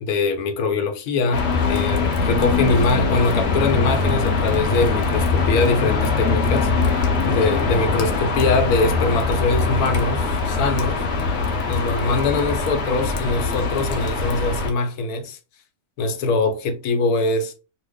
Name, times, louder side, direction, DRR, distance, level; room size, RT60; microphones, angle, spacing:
voice 1, 0.0-6.7 7.3-11.0 11.7-15.4 16.0-17.5, left 3 dB, 80° left, 1.0 m, -22 dB
sound 1, 1.3-14.7, left 4 dB, 60° left, 0.8 m, -22 dB
3.0 x 2.1 x 3.4 m
omnidirectional pair, 1.5 m